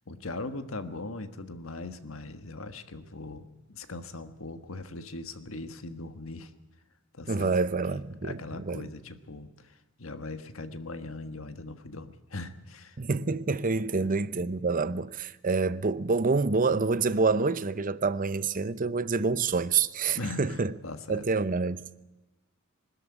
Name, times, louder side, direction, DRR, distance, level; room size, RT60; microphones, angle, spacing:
voice 1, 0.1-6.5 7.1-7.5 7.9-13.0 13.7-13.9 14.2-14.3 19.2-19.3 20.1-21.2, left 2 dB, 80° left, 1.5 m, -40 dB
voice 2, 7.3-8.9 13.0-20.7 21.1-21.8, right 4 dB, 40° right, 0.7 m, -27 dB
21.0 x 13.0 x 9.8 m
head